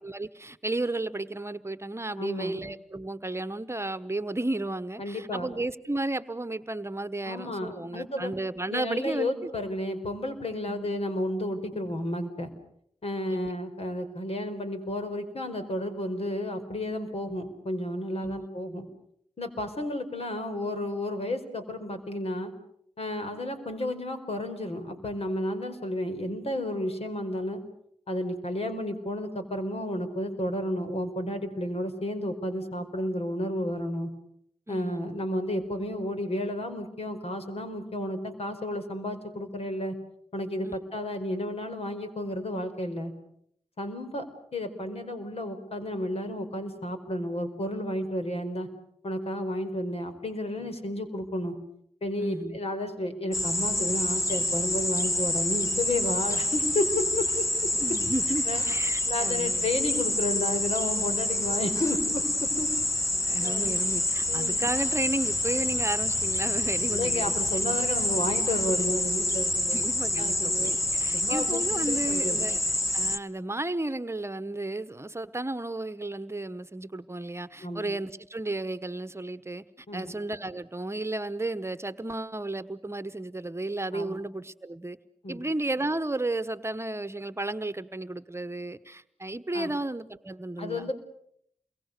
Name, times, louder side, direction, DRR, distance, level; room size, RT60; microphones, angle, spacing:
voice 1, 0.0-9.5 10.7-10.9 13.3-13.5 18.2-18.5 34.7-35.0 40.6-40.8 52.2-52.6 57.8-59.7 63.3-67.3 69.7-72.6 72.9-79.6 79.9-85.0 85.3-90.9, right 2 dB, 25° right, 1.2 m, -33 dB
voice 2, 2.2-2.6 5.0-5.5 7.2-8.3 8.7-12.5 13.0-18.9 19.4-22.5 23.0-27.6 28.1-34.1 34.7-39.9 40.3-43.1 43.8-44.3 44.5-48.7 49.0-51.5 52.0-58.0 58.5-58.6 59.1-62.7 63.4-63.7 64.3-64.7 66.9-69.8 70.2-70.8 71.1-72.5 77.6-77.9 79.9-80.1 83.9-84.2 85.2-85.4 89.5-89.7 90.6-90.9, left 1 dB, 65° left, 4.6 m, -32 dB
sound 1, 53.3-73.2, left 1 dB, 25° left, 1.5 m, -27 dB
29.0 x 23.0 x 6.8 m
cardioid pair, 50°, 11 cm